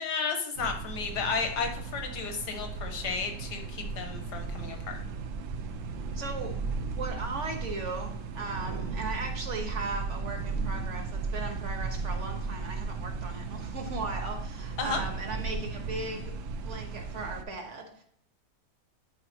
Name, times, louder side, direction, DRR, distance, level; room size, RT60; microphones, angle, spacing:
voice 1, 0.0-5.0 14.8-15.0, left 5 dB, 75° left, 5 dB, 1.6 m, -33 dB
sound 1, 0.6-17.4, right 4 dB, 65° right, 0.8 m, -35 dB
voice 2, 6.1-6.5 6.9-16.3 16.6-18.0, right 3 dB, 45° right, 3 dB, 1.3 m, -37 dB
10.0 x 4.7 x 2.8 m, 0.68 s
omnidirectional pair, 1.8 m